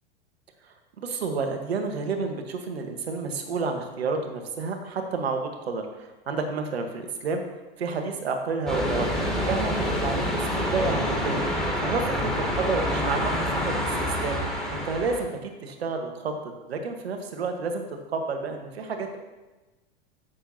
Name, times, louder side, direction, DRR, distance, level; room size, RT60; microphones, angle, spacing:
voice 1, 1.0-7.4 7.8-11.4 11.8-13.3 13.6-14.4 14.7-16.3 16.7-17.8 18.1-19.2, right 4 dB, 85° right, 5 dB, 1.4 m, -30 dB
sound 1, 8.7-15.2, equal, ahead, 2.5 m, -27 dB
14.5 x 6.5 x 2.8 m, 1.1 s
hypercardioid pair, 105°, 30 cm